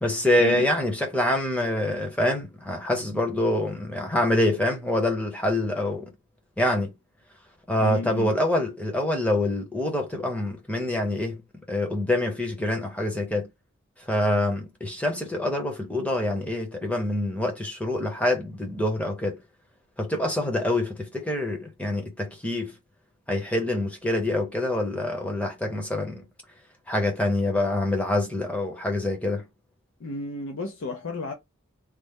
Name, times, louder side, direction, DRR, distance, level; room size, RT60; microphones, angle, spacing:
voice 1, 0.0-6.1 6.6-6.9 7.7-11.4 11.7-13.5 14.1-19.4 20.0-22.8 23.3-26.2 26.9-29.4, left 1 dB, 5° left, 0.7 m, -26 dB
voice 2, 7.8-8.3 30.0-31.3, left 2 dB, 70° left, 0.5 m, -33 dB
3.2 x 2.0 x 3.5 m
head